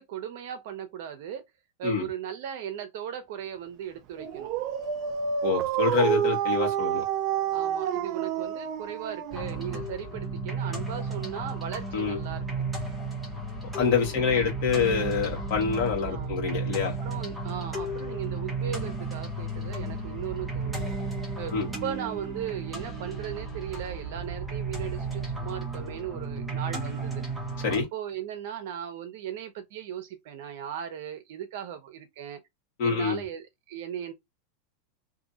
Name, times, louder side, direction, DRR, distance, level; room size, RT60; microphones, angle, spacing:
voice 1, 0.0-1.4 1.8-4.5 7.5-12.6 14.0-14.4 16.0-16.4 17.0-20.9 21.4-27.2 27.9-32.4 32.8-34.1, right 9 dB, 50° right, 0.8 m, -37 dB
Dog, 4.2-9.8, right 9 dB, 30° right, 0.5 m, -28 dB
voice 2, 5.4-7.0 11.9-12.2 13.7-16.9 21.5-21.7 27.6-27.9 32.8-33.2, left 5 dB, 45° left, 1.5 m, -26 dB
sound 1, 9.3-27.8, right 3 dB, 5° right, 0.8 m, -34 dB
2.8 x 2.6 x 3.9 m
supercardioid pair, 180°, 0 cm